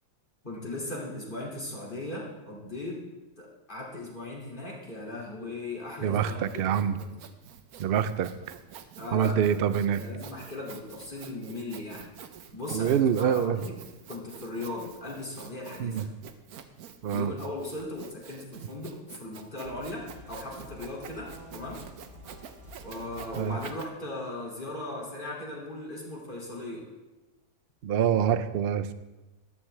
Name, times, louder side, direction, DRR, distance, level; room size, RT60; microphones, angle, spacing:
voice 1, 0.4-3.0 3.4-7.1 9.0-9.3 9.9-12.0 12.5-13.7 14.1-16.1 17.1-21.8 22.8-26.8, left 2 dB, 35° left, -3 dB, 2.6 m, -38 dB
Sawing, 5.8-23.9, right 8 dB, 85° right, 1.3 m, -48 dB
voice 2, 6.0-7.0 7.8-8.3 9.1-10.0 12.7-13.6 15.8-16.1 17.0-17.3 23.4-23.6 27.8-28.9, right 8 dB, 65° right, 13 dB, 0.6 m, -25 dB
sound 1, 19.6-25.6, equal, 35° right, 3.6 m, -50 dB
14.0 x 11.5 x 3.3 m, 1.1 s
omnidirectional pair, 1.6 m